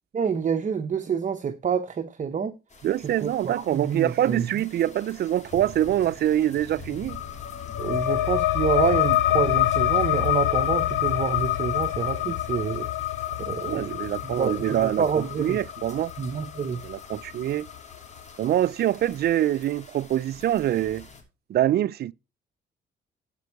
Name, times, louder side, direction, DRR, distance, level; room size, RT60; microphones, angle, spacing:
voice 1, 0.1-2.5 3.2-4.5 7.8-12.9 13.5-15.6 16.2-16.8, right 6 dB, 40° right, 0.9 m, -27 dB
sound 1, 2.7-21.2, left 3 dB, 35° left, 3.3 m, -48 dB
voice 2, 2.8-7.2 13.3-16.1 16.8-17.7 18.4-21.1 21.5-22.1, right 12 dB, 55° right, 0.4 m, -25 dB
sound 2, 7.1-18.2, left 14 dB, 80° left, 0.8 m, -26 dB
14.5 x 5.3 x 4.7 m
cardioid pair, 90°, 20 cm